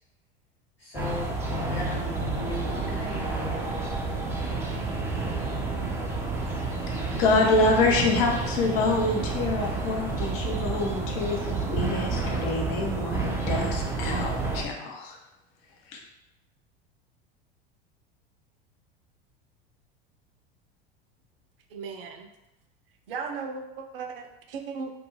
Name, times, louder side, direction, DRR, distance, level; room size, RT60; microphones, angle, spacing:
voice 1, 0.8-3.4, equal, 90° left, -6 dB, 1.0 m, -37 dB
sound 1, 0.9-14.6, right 3 dB, 10° right, 0.4 m, -30 dB
voice 2, 7.1-15.2 15.9-16.0, left 2 dB, 45° left, 1 dB, 0.6 m, -26 dB
voice 3, 21.7-22.3 23.1-24.9, right 5 dB, 70° right, 4 dB, 0.4 m, -36 dB
2.3 x 2.2 x 3.1 m, 0.94 s
figure-of-eight pair, 80°, 30 cm